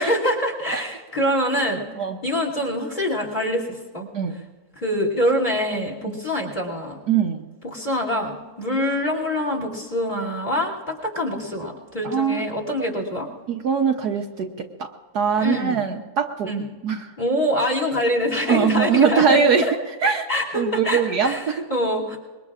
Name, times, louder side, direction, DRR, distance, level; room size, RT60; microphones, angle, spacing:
voice 1, 0.0-1.8 2.2-4.1 4.7-7.0 7.6-13.3 15.4-15.8 16.4-16.6 17.2-19.7 20.3-21.4 21.7-22.2, left 1 dB, 25° left, -1 dB, 3.0 m, -25 dB
voice 2, 7.1-7.4 12.0-12.4 13.5-14.9 15.1-16.5 16.8-17.1 18.5-19.7 20.0-20.3 20.5-21.6, right 6 dB, 65° right, 2 dB, 1.3 m, -21 dB
25.0 x 22.0 x 2.5 m, 1.4 s
omnidirectional pair, 2.0 m